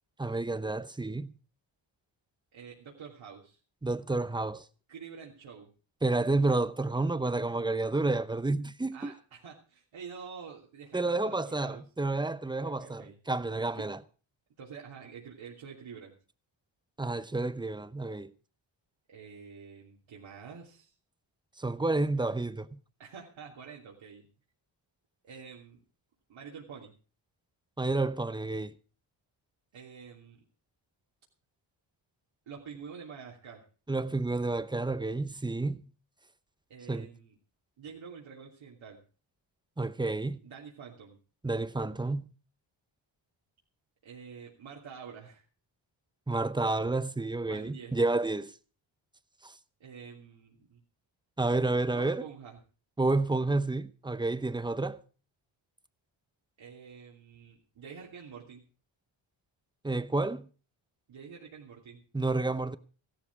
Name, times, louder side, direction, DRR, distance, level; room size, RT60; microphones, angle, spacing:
voice 1, 0.2-1.3 3.8-4.6 6.0-9.1 10.9-14.0 17.0-18.3 21.6-22.8 27.8-28.7 33.9-35.8 36.9-37.1 39.8-40.4 41.4-42.3 46.3-48.5 49.4-49.5 51.4-52.2 53.0-55.0 59.8-60.5 62.1-62.8, right 2 dB, 10° right, 0.7 m, -30 dB
voice 2, 2.5-3.6 4.9-5.7 8.9-11.8 12.6-13.2 13.8-13.9 14.6-16.1 19.1-20.9 23.0-24.3 25.2-25.8 26.3-26.9 29.7-30.4 32.5-33.6 36.7-37.4 37.8-39.0 40.4-41.2 44.0-45.4 47.5-48.0 49.8-50.8 51.9-52.6 56.6-58.7 61.1-62.0, right 6 dB, 75° right, 3.2 m, -47 dB
16.0 x 13.0 x 4.7 m
wide cardioid pair, 135°, 47 cm